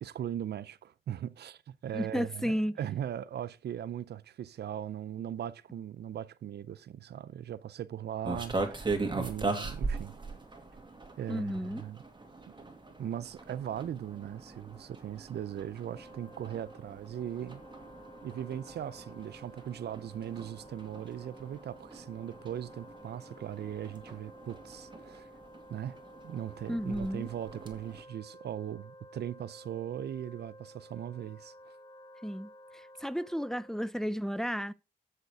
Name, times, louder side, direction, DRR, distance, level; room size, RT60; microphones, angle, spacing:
voice 1, 0.0-10.2 11.2-12.0 12.5-12.6 13.0-17.6 18.2-25.3 25.7-26.0 26.2-31.5, right 10 dB, 90° right, 0.5 m, -39 dB
voice 2, 1.9-2.8 11.3-11.8 26.7-27.3 32.2-34.7, equal, 5° left, 0.5 m, -33 dB
sound 1, 8.2-28.0, right 3 dB, 30° right, 2.2 m, -41 dB
Wind instrument woodwind instrument, 15.8-33.9, equal, 25° left, 1.4 m, -54 dB
8.1 x 6.6 x 4.8 m
cardioid pair, 65°, 17 cm